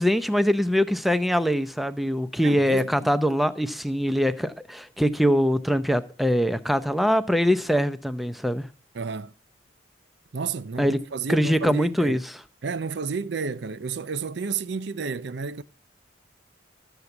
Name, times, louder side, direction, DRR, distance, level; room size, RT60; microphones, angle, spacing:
voice 1, 0.0-8.7 10.8-11.0 11.3-12.2, equal, ahead, 0.6 m, -23 dB
voice 2, 2.4-3.1 8.9-9.3 10.3-12.2 12.6-15.6, right 5 dB, 65° right, 0.5 m, -31 dB
13.5 x 8.0 x 7.1 m
head